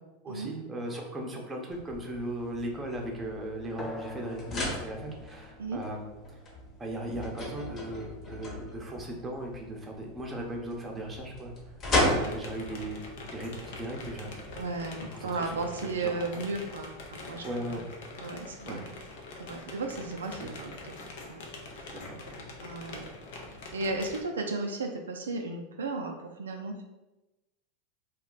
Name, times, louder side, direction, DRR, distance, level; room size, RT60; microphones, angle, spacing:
voice 1, 0.2-6.4 6.8-11.5 12.0-13.0 13.3-14.4 15.1-15.6 16.0-16.4 17.4-17.9 18.7-18.8 20.4-20.5 21.9-22.5 22.9-23.0, right 1 dB, 20° right, 0 dB, 0.7 m, -38 dB
sound 1, 1.7-14.6, left 1 dB, 35° left, 0.9 m, -36 dB
sound 2, 3.8-8.8, left 1 dB, 15° left, 0.5 m, -46 dB
sound 3, 11.9-24.2, left 2 dB, 70° left, 0.5 m, -44 dB
voice 2, 14.5-17.4 17.7-17.8 18.2-18.8 19.4-21.0 21.3-21.4 21.7-22.0 22.6-23.1 23.5-26.8, right 3 dB, 90° right, 3 dB, 0.3 m, -35 dB
2.3 x 2.1 x 3.8 m, 1.0 s
hypercardioid pair, 100°, 0 cm